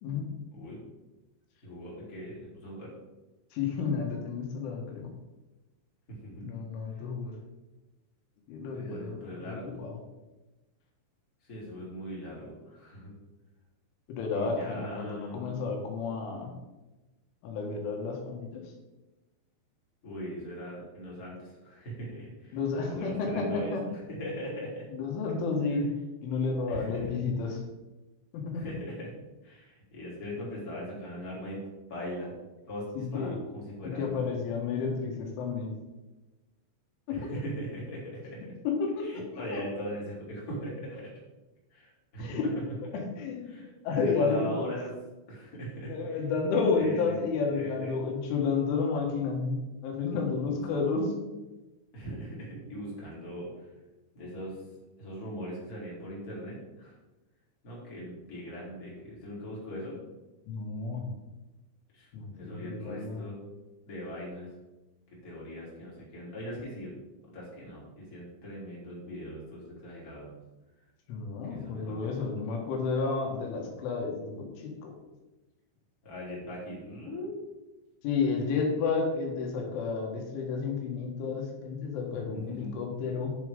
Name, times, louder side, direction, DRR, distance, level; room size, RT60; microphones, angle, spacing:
voice 1, 1.6-2.9 6.1-6.5 6.9-7.0 8.7-9.8 11.4-13.1 14.3-15.6 20.0-22.6 22.9-23.8 24.1-24.9 26.7-27.1 28.5-29.1 29.4-31.6 31.9-32.3 32.7-34.2 37.1-38.5 39.0-41.1 41.7-42.4 43.5-44.9 45.3-46.2 46.7-47.1 47.5-48.0 50.4-50.6 51.9-53.7 54.1-54.6 55.0-57.0 57.6-60.0 61.9-63.4 63.9-64.5 65.1-66.9 67.3-70.3 71.5-72.1 76.0-77.3 82.5-82.8, equal, 20° left, -5 dB, 3.4 m, -40 dB
voice 2, 3.5-5.1 6.4-7.4 8.5-10.0 14.1-16.5 17.4-18.7 22.5-23.8 24.9-25.9 26.2-27.6 28.3-28.6 33.0-33.4 33.8-35.8 38.7-39.6 42.2-42.5 42.9-43.5 43.8-44.7 45.9-51.1 60.5-61.2 62.1-63.2 71.1-74.9 78.0-83.4, left 4 dB, 80° left, 1 dB, 4.1 m, -31 dB
10.5 x 7.1 x 5.2 m, 1.1 s
omnidirectional pair, 5.5 m